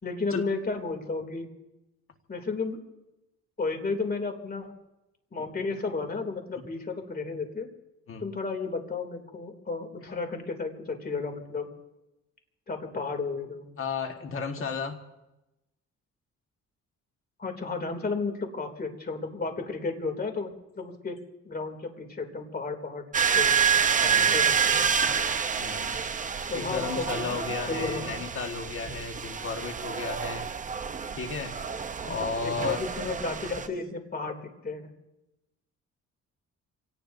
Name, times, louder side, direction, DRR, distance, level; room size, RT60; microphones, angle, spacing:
voice 1, 0.0-1.5 2.3-2.8 3.6-4.7 5.3-7.7 8.2-11.7 12.7-13.7 17.4-21.2 21.4-23.0 23.3-23.5 24.0-24.8 26.5-27.4 27.7-28.0 32.4-34.8, left 4 dB, 30° left, 5 dB, 2.8 m, -33 dB
voice 2, 13.8-15.0 24.0-24.3 25.6-25.9 26.5-30.5 31.2-31.6 32.0-32.8, left 5 dB, 45° left, 4 dB, 1.6 m, -33 dB
sound 1, 23.1-33.7, right 7 dB, 25° right, 0.7 m, -28 dB
27.5 x 18.0 x 2.7 m, 0.97 s
cardioid pair, 110°, 29 cm